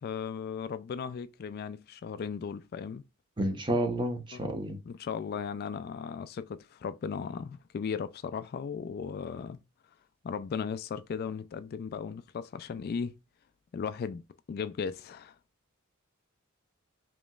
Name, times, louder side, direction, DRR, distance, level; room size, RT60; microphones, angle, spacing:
voice 1, 0.0-3.0 4.3-4.5 4.9-9.6 10.2-13.1 13.7-14.2 14.5-15.4, left 6 dB, 50° left, 0.3 m, -36 dB
voice 2, 3.4-4.8, right 1 dB, 25° right, 0.8 m, -30 dB
5.1 x 3.0 x 2.3 m
head